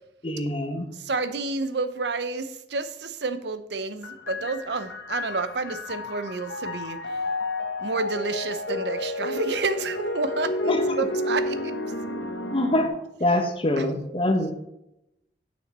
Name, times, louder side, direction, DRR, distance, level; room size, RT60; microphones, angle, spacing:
voice 1, 0.2-0.9 10.7-11.1 12.5-14.6, left 1 dB, 30° left, 5 dB, 1.2 m, -25 dB
voice 2, 1.0-7.0 7.8-11.7 13.8-13.9, right 3 dB, 75° right, 11 dB, 0.7 m, -30 dB
sound 1, 4.0-12.9, left 2 dB, 85° left, 1.1 m, -31 dB
8.8 x 6.4 x 4.2 m, 0.85 s
head